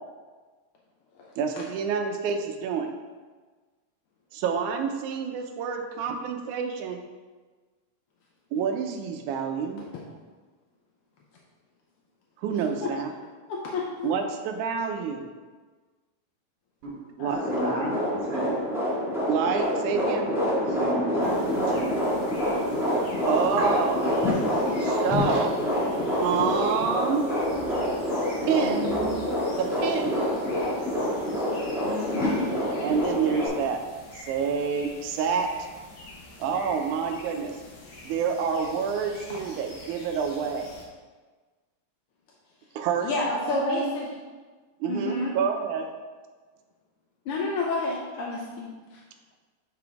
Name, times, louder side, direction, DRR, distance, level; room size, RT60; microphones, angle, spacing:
voice 1, 1.4-2.9 4.3-7.0 8.5-9.8 12.4-13.1 14.0-15.3 17.2-18.0 19.3-20.3 23.3-24.0 24.8-25.6 26.1-27.3 28.5-28.9 29.6-30.2 32.8-33.8 34.1-35.5 36.4-37.6 38.0-40.7 42.8-43.9 44.8-45.9, right 6 dB, 85° right, 5 dB, 2.1 m, -28 dB
voice 2, 13.5-14.3 17.2-17.9 28.6-29.2 31.8-32.5 43.0-44.1 44.9-45.3 47.3-49.0, left 3 dB, 80° left, -2 dB, 1.2 m, -30 dB
sound 1, 17.3-33.5, equal, ahead, 0.7 m, -27 dB
voice 3, 17.5-18.5 20.7-21.9 23.6-23.7, right 1 dB, 55° right, -5 dB, 2.2 m, -34 dB
sound 2, 21.2-40.9, left 1 dB, 60° left, 1.5 m, -46 dB
6.9 x 5.9 x 3.5 m, 1.4 s
omnidirectional pair, 3.4 m